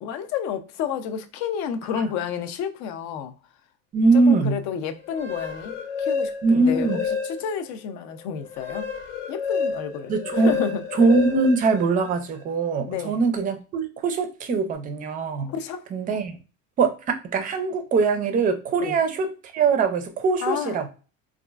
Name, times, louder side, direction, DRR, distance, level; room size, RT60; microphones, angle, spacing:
voice 1, 0.0-3.3 4.1-8.9 9.3-10.8 12.9-13.2 15.4-15.9 18.8-19.0 20.4-20.8, left 7 dB, 60° left, 0.5 m, -30 dB
voice 2, 3.9-4.6 6.4-7.0 10.1-10.5 11.0-15.5 15.9-16.3 16.8-20.9, right 4 dB, 25° right, 0.4 m, -22 dB
sound 1, 5.0-7.7 8.1-12.4, left 6 dB, 80° left, 0.9 m, -30 dB
4.1 x 2.4 x 2.3 m
cardioid pair, 175°, 32 cm